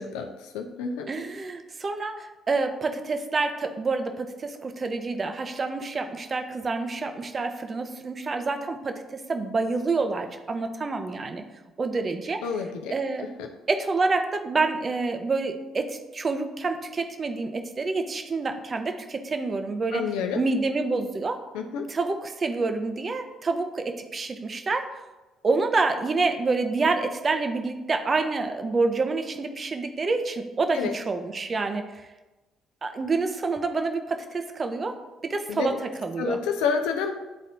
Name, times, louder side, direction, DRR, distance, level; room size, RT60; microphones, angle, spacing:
voice 1, 0.0-1.1 12.4-12.9 13.2-13.5 19.9-20.4 21.5-21.9 30.7-30.9 35.5-35.8 36.2-37.1, left 5 dB, 70° left, 5 dB, 0.7 m, -29 dB
voice 2, 1.1-11.4 11.8-12.4 12.9-13.3 13.7-20.0 20.3-21.4 21.9-25.0 25.4-32.0 32.8-35.0 35.2-35.8 36.0-36.4, right 3 dB, 35° right, 7 dB, 0.7 m, -27 dB
10.5 x 4.1 x 2.6 m, 1.1 s
figure-of-eight pair, 45°, 0 cm